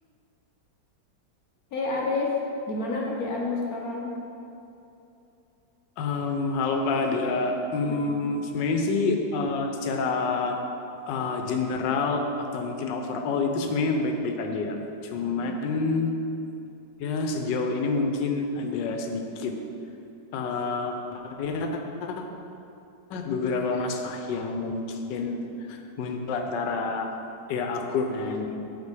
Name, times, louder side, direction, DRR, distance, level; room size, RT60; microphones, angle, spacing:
voice 1, 1.7-2.4 2.7-4.2 7.8-8.3 15.2-15.6, left 3 dB, 60° left, -1 dB, 1.2 m, -30 dB
voice 2, 6.0-10.6 11.1-14.8 15.1-16.1 17.0-19.5 20.3-21.7 22.0-22.2 23.1-25.4 25.7-27.1 27.5-28.5, left 3 dB, 90° left, 4 dB, 1.3 m, -28 dB
7.4 x 4.3 x 4.8 m, 2.8 s
omnidirectional pair, 1.9 m